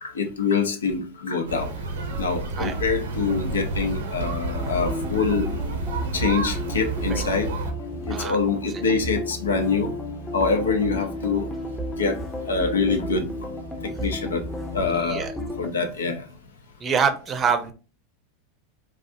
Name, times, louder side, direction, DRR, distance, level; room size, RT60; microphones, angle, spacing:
voice 1, 0.0-1.7 2.2-5.5 6.1-7.5 8.1-9.9 10.3-11.5 12.0-12.2 12.5-13.3 14.0-14.4 14.7-15.3 15.6-16.2, left 4 dB, 80° left, 5 dB, 0.7 m, -25 dB
sound 1, 1.5-7.7, right 3 dB, 75° right, 0.8 m, -30 dB
sound 2, 4.5-15.7, equal, 10° left, 0.6 m, -33 dB
voice 2, 15.0-15.3 15.8-15.9 16.8-17.7, right 6 dB, 30° right, 8 dB, 0.6 m, -25 dB
4.1 x 2.5 x 2.7 m, 0.34 s
hypercardioid pair, 90°, 0 cm